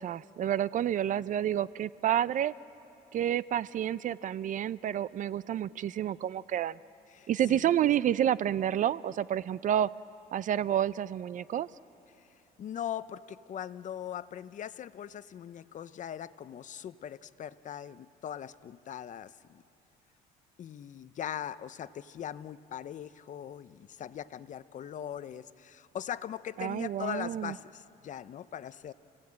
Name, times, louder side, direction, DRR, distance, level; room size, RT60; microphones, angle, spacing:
voice 1, 0.0-2.5 3.1-6.8 7.3-9.9 10.3-11.7 26.6-27.5, right 10 dB, 50° right, 18 dB, 0.5 m, -29 dB
voice 2, 7.1-7.7 12.6-19.6 20.6-28.9, left 10 dB, 50° left, 15 dB, 0.7 m, -40 dB
29.5 x 17.5 x 8.7 m, 2.8 s
cardioid pair, 110°, 17 cm